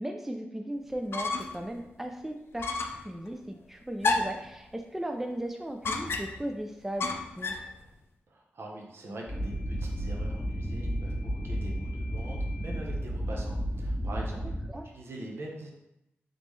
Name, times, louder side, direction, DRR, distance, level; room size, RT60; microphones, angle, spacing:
voice 1, 0.0-2.7 2.9-7.5 14.7-14.9, right 1 dB, 5° right, 4 dB, 0.3 m, -37 dB
sound 1, 0.9-1.7 2.0-2.1 2.6-3.1 4.0-4.5 5.8-6.5 7.0-7.7, left 3 dB, 65° left, 0.4 m, -30 dB
voice 2, 8.3-14.6 14.8-15.7, right 1 dB, 70° right, 0 dB, 0.8 m, -43 dB
sound 2, 9.3-14.7, equal, 15° left, 1.3 m, -32 dB
3.8 x 3.5 x 3.2 m, 0.86 s
wide cardioid pair, 105°, 4 cm